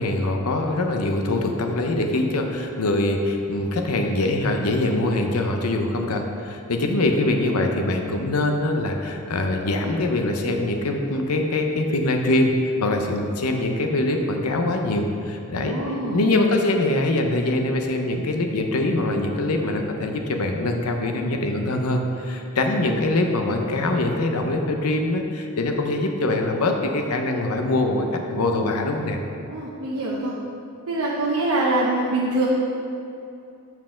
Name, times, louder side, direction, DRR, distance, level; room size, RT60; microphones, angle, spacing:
voice 1, 0.0-15.8 16.1-29.2, left 2 dB, 85° left, 3 dB, 0.7 m, -23 dB
voice 2, 15.6-16.2 29.5-30.4 30.9-32.5, right 2 dB, 85° right, -5 dB, 0.8 m, -24 dB
5.8 x 4.6 x 6.2 m, 2.6 s
head